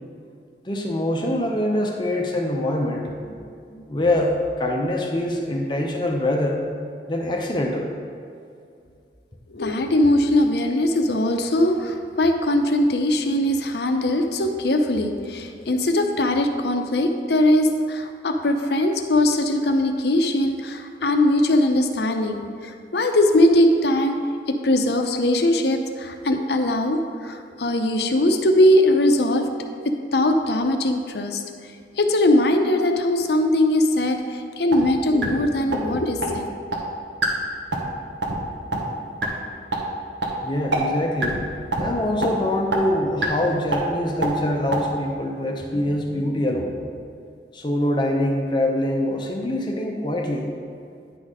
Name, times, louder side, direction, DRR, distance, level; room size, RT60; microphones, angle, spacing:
voice 1, 0.6-3.4 3.7-6.6 7.1-7.9 38.7-39.0 40.4-41.4 41.8-46.8 47.5-50.5, left 1 dB, 25° left, 1 dB, 0.6 m, -24 dB
voice 2, 9.5-24.2 24.5-29.4 29.9-31.4 32.0-36.5, left 1 dB, 65° left, 5 dB, 0.7 m, -20 dB
sound 1, 34.7-34.9 35.2-35.3 35.7-35.8 36.2-36.3 36.7-36.8 37.2-37.3 37.7-37.9 38.2-38.4 38.7-38.8 39.2-39.3 39.7-39.8 40.2-40.3 40.7-40.8 41.2-41.4 41.7-41.8 42.2-42.3 42.7-42.8 43.2-43.3 43.7-43.8 44.2-44.3 44.7-44.8, right 2 dB, 85° right, 1.1 m, -23 dB
9.9 x 4.1 x 4.9 m, 2.3 s
head